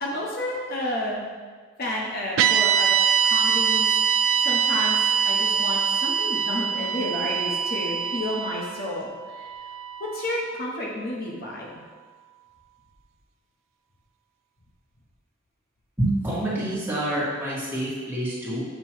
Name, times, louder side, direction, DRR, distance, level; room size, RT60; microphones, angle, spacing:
voice 1, 0.0-1.2 1.8-2.9 3.2-3.9 4.1-5.0 5.2-9.1 10.1-11.7, left 1 dB, 50° left, -3 dB, 0.9 m, -30 dB
sound 1, 2.4-10.7, right 7 dB, 80° right, 0.3 m, -24 dB
voice 2, 16.0-18.6, right 1 dB, 10° right, -9 dB, 1.8 m, -27 dB
7.6 x 3.0 x 4.5 m, 1.5 s
head